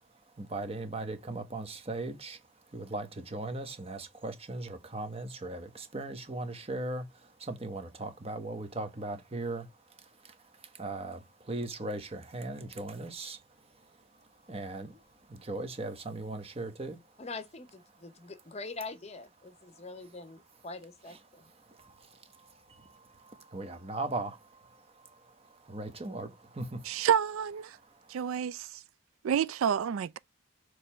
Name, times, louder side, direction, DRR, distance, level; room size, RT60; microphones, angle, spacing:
voice 1, 0.4-2.4 2.7-7.0 7.4-9.7 10.2-10.3 10.7-13.4 14.5-15.0 15.3-17.0 21.1-21.2 21.8-27.2 28.1-28.2, right 2 dB, 30° right, 1.1 m, -39 dB
voice 2, 17.2-21.5, left 3 dB, 30° left, 0.7 m, -44 dB
voice 3, 26.8-27.8 28.1-28.8 29.2-30.2, right 8 dB, 75° right, 0.3 m, -29 dB
6.7 x 3.2 x 5.6 m
head